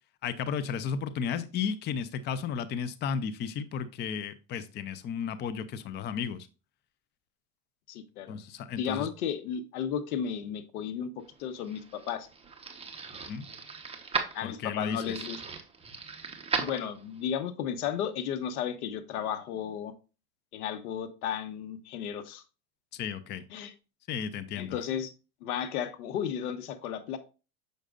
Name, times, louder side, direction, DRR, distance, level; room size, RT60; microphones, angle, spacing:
voice 1, 0.2-6.5 8.3-9.1 13.3-13.5 14.4-15.0 22.9-23.4 24.1-24.8, left 7 dB, 25° left, 0.5 m, -34 dB
voice 2, 7.9-8.4 8.7-11.1 11.4-12.3 14.3-15.4 16.6-19.9 20.5-22.4 23.5-23.7 24.6-25.1 25.4-27.2, left 8 dB, 85° left, 1.1 m, -34 dB
sound 1, 11.3-17.3, right 5 dB, 15° right, 1.0 m, -37 dB
6.5 x 6.3 x 2.4 m
supercardioid pair, 115°, 44 cm